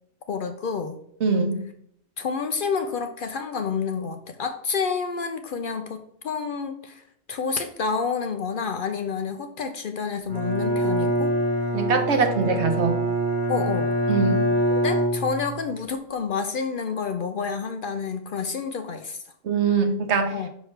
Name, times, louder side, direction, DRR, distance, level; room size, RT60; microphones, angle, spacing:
voice 1, 0.3-1.0 2.2-7.0 7.3-11.3 13.5-13.9 14.7-19.2 20.3-20.5, left 5 dB, 60° left, 7 dB, 0.6 m, -29 dB
voice 2, 1.2-1.6 11.7-13.0 14.1-14.5 19.4-20.3, right 5 dB, 75° right, 5 dB, 1.2 m, -22 dB
Bowed string instrument, 10.3-15.7, right 1 dB, 20° right, 1.1 m, -25 dB
6.5 x 4.6 x 3.2 m, 0.69 s
omnidirectional pair, 1.2 m